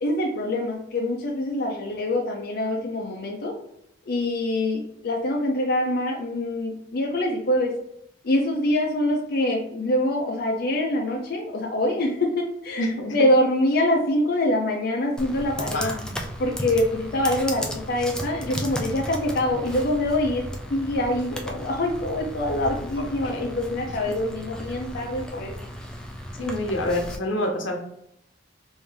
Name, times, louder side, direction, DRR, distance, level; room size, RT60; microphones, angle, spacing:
voice 1, 0.0-3.5 4.1-7.7 8.2-15.9 16.4-20.4 20.7-25.7, left 1 dB, 55° left, -1 dB, 0.5 m, -25 dB
voice 2, 12.8-13.1 15.7-16.2 23.2-23.4 26.4-27.8, left 1 dB, 90° left, 1 dB, 0.9 m, -27 dB
Computer keyboard, 15.2-27.2, equal, 5° left, 0.3 m, -35 dB
3.3 x 2.6 x 3.3 m, 0.76 s
head